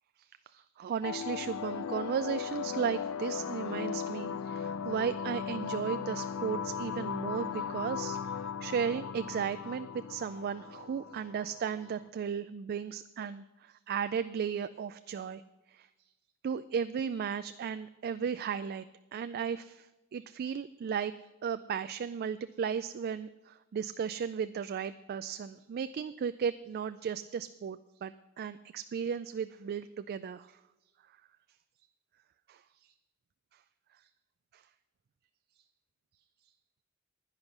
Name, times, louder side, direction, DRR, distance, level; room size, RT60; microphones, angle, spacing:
voice 1, 0.5-15.4 15.7-15.9 16.4-18.9 19.1-21.1 21.4-30.6 32.5-32.9 34.5-34.6, right 7 dB, 45° right, 12 dB, 0.3 m, -35 dB
sound 1, 1.0-12.0, left 7 dB, 70° left, 0.4 m, -37 dB
10.5 x 9.8 x 5.9 m, 1.1 s
head